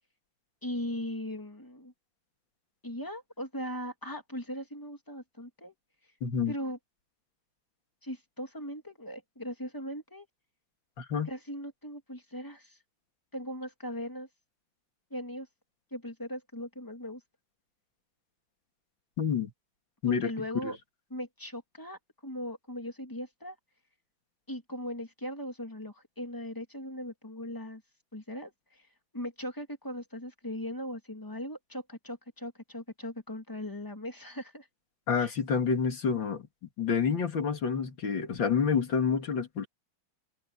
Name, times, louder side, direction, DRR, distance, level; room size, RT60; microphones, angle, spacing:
voice 1, 0.6-1.9 2.8-5.7 6.5-6.8 8.0-10.3 11.3-12.8 13.3-14.3 15.1-15.5 15.9-17.2 20.1-20.8 21.1-23.6 24.5-27.8 28.1-28.9 29.1-34.7 35.2-35.3, equal, 10° left, 2.7 m, -39 dB
voice 2, 6.2-6.5 11.0-11.3 19.2-19.5 20.0-20.3 20.6-20.7 35.1-36.5 36.8-39.7, left 6 dB, 70° left, 3.0 m, -28 dB
omnidirectional pair, 2.1 m